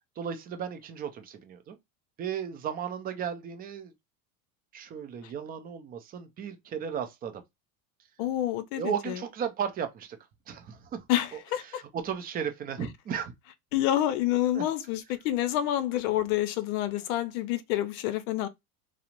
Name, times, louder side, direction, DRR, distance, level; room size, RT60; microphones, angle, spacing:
voice 1, 0.2-1.8 2.2-3.9 4.7-7.4 8.7-10.2 10.5-11.0 11.3-11.4 11.7-13.3 14.6-14.7, right 8 dB, 25° right, 0.3 m, -35 dB
voice 2, 8.2-9.2 11.1-11.8 13.7-18.5, left 13 dB, 70° left, 0.6 m, -28 dB
2.4 x 2.0 x 2.9 m
supercardioid pair, 115°, 43 cm